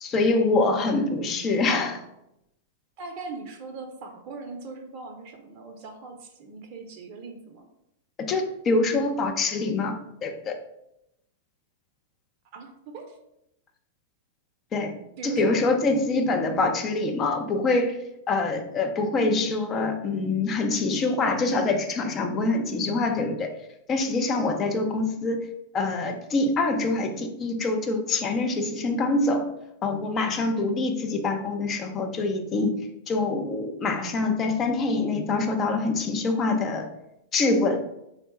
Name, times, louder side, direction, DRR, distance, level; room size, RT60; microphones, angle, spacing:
voice 1, 0.0-2.0 8.2-10.6 14.7-18.0 18.3-23.6 23.9-25.5 25.7-29.5 29.8-36.9 37.3-37.8, left 3 dB, 30° left, 4 dB, 0.6 m, -25 dB
voice 2, 3.0-7.6 12.5-13.2 15.2-15.6, right 4 dB, 45° right, 4 dB, 0.6 m, -40 dB
3.6 x 2.2 x 4.1 m, 0.83 s
figure-of-eight pair, 100°, 0 cm